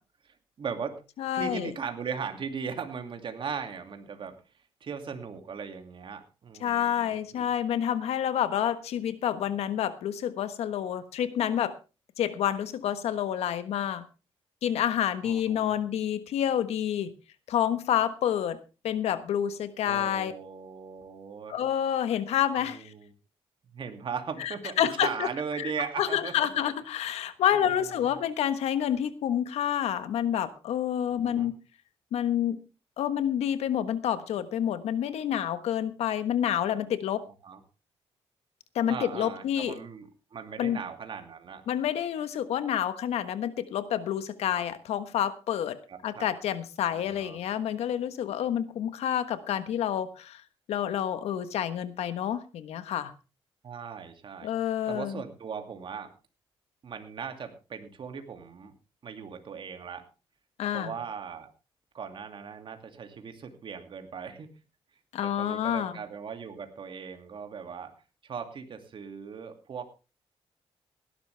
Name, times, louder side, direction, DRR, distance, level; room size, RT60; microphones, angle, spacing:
voice 1, 0.2-1.0 1.3-4.3 4.8-7.5 15.2-15.7 19.8-21.6 22.6-23.1 23.7-26.5 27.5-28.1 31.2-31.5 37.4-37.6 38.9-41.6 45.9-46.3 46.9-47.4 53.6-54.5 54.9-56.1 56.8-58.7 59.0-60.0 60.7-61.5 61.9-64.5 65.2-67.9 68.2-69.9, right 6 dB, 55° right, 6 dB, 2.6 m, -38 dB
voice 2, 1.2-1.7 6.6-11.7 12.2-14.0 14.6-17.1 17.5-18.6 18.8-20.3 21.5-22.9 24.4-25.3 25.6-31.6 32.1-32.6 33.0-37.2 38.7-39.7 40.6-40.8 41.7-45.8 46.0-50.4 50.7-53.1 54.4-55.2 60.6-60.9 65.1-66.0, left 10 dB, 90° left, 12 dB, 1.3 m, -28 dB
17.5 x 12.0 x 3.4 m, 0.31 s
cardioid pair, 105°, 10 cm